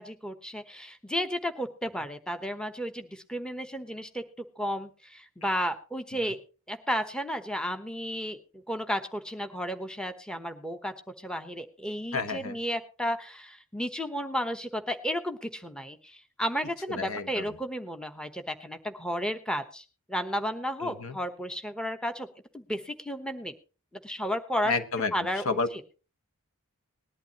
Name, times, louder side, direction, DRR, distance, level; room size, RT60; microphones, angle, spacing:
voice 1, 0.0-4.2 4.6-6.4 6.7-22.3 22.5-23.5 24.0-24.7 25.1-25.8, equal, 5° left, 7 dB, 1.0 m, -33 dB
voice 2, 12.1-12.6 17.0-17.5 20.8-21.2 24.6-25.1 25.4-25.7, left 4 dB, 75° left, 10 dB, 1.3 m, -30 dB
19.5 x 11.5 x 2.9 m, 0.34 s
head